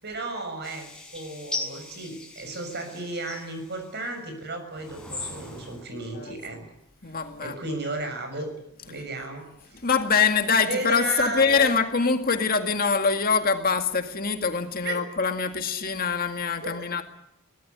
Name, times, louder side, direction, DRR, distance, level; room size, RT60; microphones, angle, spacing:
voice 1, 0.0-6.6 7.4-8.5 8.8-9.8 10.7-11.9 14.8-14.9 16.6-16.9, right 2 dB, 50° right, 7 dB, 6.9 m, -34 dB
sound 1, 0.6-4.1 4.7-5.8, left 2 dB, 5° left, 6.7 m, -39 dB
voice 2, 7.0-7.6 9.7-17.0, left 5 dB, 40° left, 6 dB, 2.1 m, -24 dB
23.5 x 18.5 x 9.8 m, 0.79 s
head